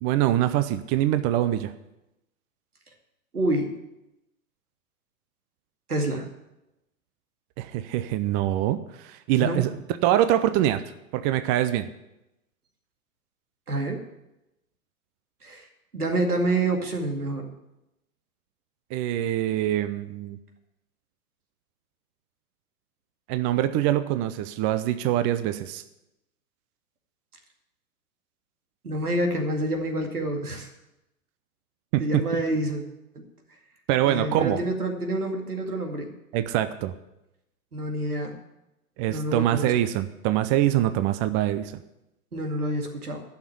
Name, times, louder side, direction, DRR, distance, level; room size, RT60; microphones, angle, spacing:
voice 1, 0.0-1.7 7.6-9.7 10.0-10.8 11.1-11.9 18.9-20.4 23.3-25.8 31.9-32.4 33.9-34.6 36.3-36.9 39.0-41.7, right 12 dB, 25° right, 12 dB, 0.5 m, -24 dB
voice 2, 3.3-3.7 5.9-6.3 9.4-9.6 13.7-14.0 15.4-15.7 15.9-17.5 28.8-30.7 32.0-32.8 34.0-36.1 37.7-38.3 39.1-39.7 42.3-43.2, right 1 dB, 90° right, 4 dB, 2.3 m, -27 dB
11.5 x 6.5 x 9.4 m, 0.91 s
hypercardioid pair, 110°, 44 cm